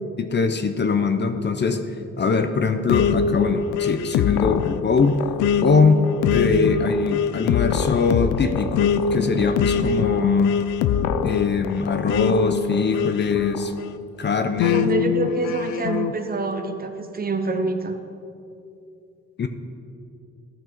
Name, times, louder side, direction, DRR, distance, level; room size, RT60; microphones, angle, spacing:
voice 1, 0.2-1.8 2.2-5.2 5.6-10.6 11.2-13.7 14.2-14.8 19.4-19.5, left 5 dB, 35° left, 8 dB, 0.7 m, -22 dB
sound 1, 2.9-14.0 14.6-16.1, left 7 dB, 80° left, 0.5 m, -23 dB
voice 2, 14.6-18.0, right 3 dB, 30° right, 7 dB, 0.9 m, -26 dB
14.0 x 6.1 x 4.6 m, 2.6 s
cardioid pair, 90°, 30 cm